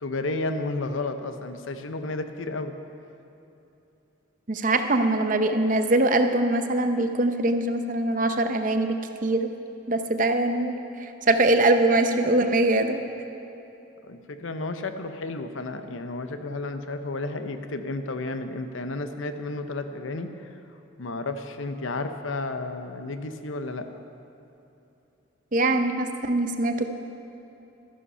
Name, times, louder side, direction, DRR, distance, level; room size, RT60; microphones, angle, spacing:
voice 1, 0.0-2.7 14.0-20.5 21.0-23.9, left 2 dB, 85° left, 8 dB, 0.8 m, -32 dB
voice 2, 4.5-9.5 9.9-13.0 25.5-26.9, right 2 dB, 40° right, 7 dB, 0.7 m, -23 dB
13.0 x 11.0 x 5.5 m, 3.0 s
head